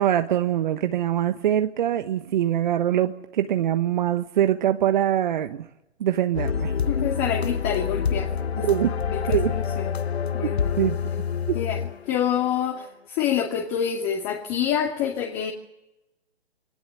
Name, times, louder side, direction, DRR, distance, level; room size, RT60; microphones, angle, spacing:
voice 1, 0.0-5.7 6.0-6.7 8.6-8.9 9.3-9.5 10.4-10.5 10.8-11.0 11.5-11.6, right 11 dB, 45° right, 8 dB, 1.3 m, -23 dB
sound 1, 6.4-12.4, left 6 dB, 75° left, 1.2 m, -27 dB
voice 2, 6.9-8.3 8.6-8.8 9.1-9.9 10.3-10.8 11.5-11.8 12.1-15.5, left 9 dB, 25° left, 2 dB, 2.5 m, -27 dB
23.0 x 19.0 x 9.3 m, 0.92 s
hypercardioid pair, 140°, 32 cm